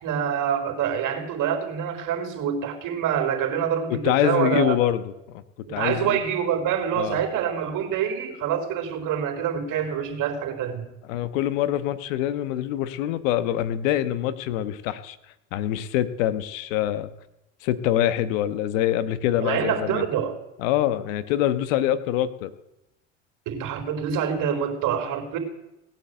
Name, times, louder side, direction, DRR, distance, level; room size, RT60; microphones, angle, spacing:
voice 1, 0.0-4.8 5.7-10.8 19.4-20.4 23.5-25.4, right 8 dB, 55° right, 5 dB, 3.9 m, -26 dB
voice 2, 3.9-5.0 5.3-5.4 5.7-6.2 6.9-7.2 11.1-15.2 15.5-17.1 17.6-20.1 20.6-22.5, left 12 dB, 80° left, 13 dB, 1.2 m, -25 dB
18.0 x 9.0 x 8.0 m, 0.93 s
supercardioid pair, 90°, 38 cm